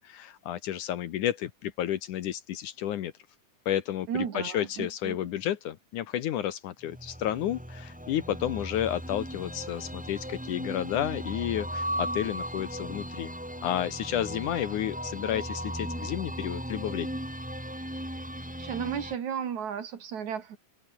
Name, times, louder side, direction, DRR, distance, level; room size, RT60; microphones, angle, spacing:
voice 1, 0.0-3.1 3.7-13.3 13.6-17.1, left 11 dB, 70° left, 2.4 m, -31 dB
voice 2, 4.1-5.2 18.6-20.6, right 8 dB, 55° right, 3.3 m, -34 dB
sound 1, 6.8-19.2, equal, ahead, 4.8 m, -37 dB
open air
omnidirectional pair, 4.1 m